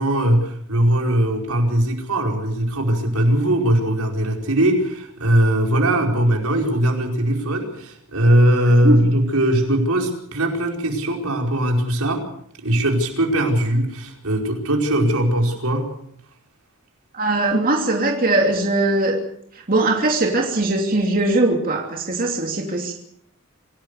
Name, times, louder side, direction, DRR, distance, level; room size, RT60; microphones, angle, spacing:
voice 1, 0.0-12.2 12.6-15.9, right 1 dB, 80° right, 2 dB, 5.0 m, -20 dB
voice 2, 17.1-19.2 19.5-22.9, right 2 dB, 40° right, 1 dB, 2.9 m, -20 dB
26.5 x 17.5 x 6.7 m, 0.69 s
head